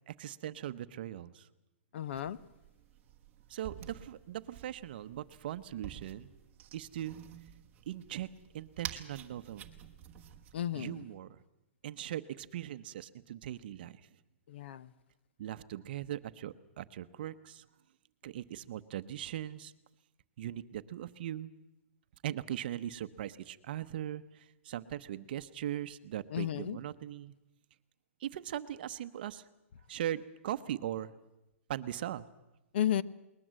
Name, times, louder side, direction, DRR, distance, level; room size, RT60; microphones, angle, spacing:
voice 1, 0.1-1.5 3.5-6.3 6.7-7.2 7.9-8.3 8.5-9.6 10.7-11.4 11.8-14.0 15.4-17.6 18.2-19.7 20.4-21.5 22.2-27.3 28.2-29.4 29.9-31.1 31.7-32.3, right 12 dB, 45° right, 0.9 m, -40 dB
voice 2, 1.9-2.4 10.5-11.0 14.5-14.9 26.3-26.8 32.7-33.0, left 11 dB, 55° left, 0.7 m, -33 dB
sound 1, 2.1-10.6, right 10 dB, 20° right, 1.3 m, -50 dB
20.5 x 20.0 x 7.6 m
hypercardioid pair, 170°, 7 cm